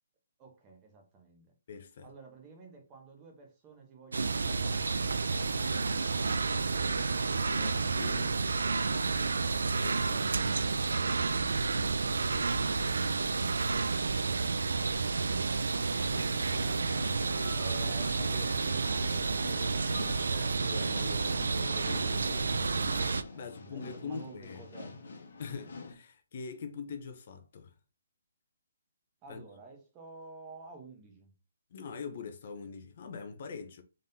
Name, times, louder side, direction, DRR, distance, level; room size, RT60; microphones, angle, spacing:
voice 1, 0.4-1.5 2.0-7.0 16.5-20.3 23.3-25.0 29.2-31.3, right 3 dB, 20° right, 1.0 m, -52 dB
voice 2, 1.7-2.1 7.5-8.4 9.8-10.5 20.1-24.6 25.4-27.7 29.3-29.4 31.7-33.8, left 5 dB, 45° left, 0.6 m, -43 dB
sound 1, 4.1-23.2, right 4 dB, 85° right, 0.3 m, -30 dB
sound 2, 8.4-13.9, equal, 60° right, 1.7 m, -49 dB
sound 3, 15.9-25.9, left 3 dB, 70° left, 1.1 m, -46 dB
3.7 x 3.6 x 2.7 m
hypercardioid pair, 165°, 0 cm